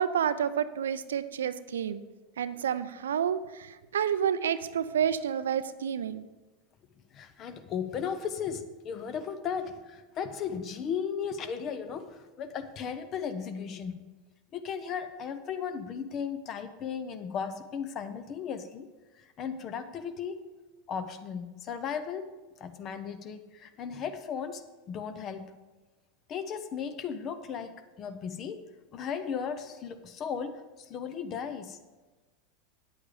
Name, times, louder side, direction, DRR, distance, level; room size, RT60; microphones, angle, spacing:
voice 1, 0.0-2.0 2.4-6.3, right 8 dB, 75° right, 14 dB, 0.4 m, -29 dB
voice 2, 7.1-14.0 14.5-18.9 19.2-20.4 20.9-22.3 22.6-25.6 26.3-28.6 28.9-31.8, left 7 dB, 40° left, 10 dB, 0.9 m, -36 dB
8.9 x 8.4 x 5.0 m, 1.2 s
figure-of-eight pair, 85°, 0 cm